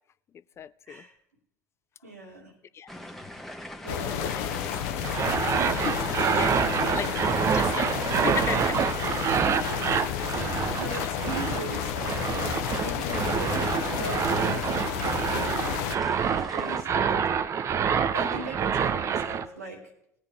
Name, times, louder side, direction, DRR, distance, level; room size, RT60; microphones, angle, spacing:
voice 1, 0.6-1.0 2.7-2.9 5.9-6.0 6.3-6.6 6.9-8.8, left 8 dB, 35° left, 0.4 m, -34 dB
voice 2, 2.0-2.5 3.8-5.1 5.5-5.9 9.1-12.3 12.8-17.2 18.1-19.8, right 2 dB, 90° right, 2.4 m, -40 dB
sound 1, 2.9-16.8, left 1 dB, 5° left, 1.2 m, -42 dB
sound 2, 3.9-16.0, left 10 dB, 65° left, 0.8 m, -31 dB
sound 3, 5.0-19.4, right 7 dB, 35° right, 0.7 m, -27 dB
19.0 x 9.7 x 3.5 m
hypercardioid pair, 70°, 8 cm